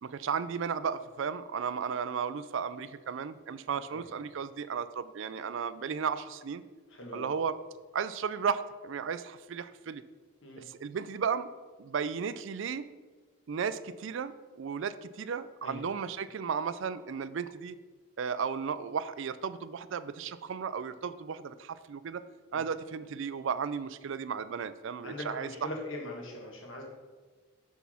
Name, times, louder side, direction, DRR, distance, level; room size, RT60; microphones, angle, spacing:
voice 1, 0.0-6.6 7.1-7.5 7.9-10.0 10.6-11.5 11.8-12.9 13.5-17.8 18.2-22.2 22.5-25.7, right 6 dB, 60° right, 14 dB, 0.3 m, -34 dB
voice 2, 6.9-7.3 10.4-10.6 15.6-15.8 22.5-22.6 25.0-26.8, left 1 dB, 60° left, 0 dB, 1.8 m, -41 dB
6.2 x 5.8 x 5.8 m, 1.4 s
head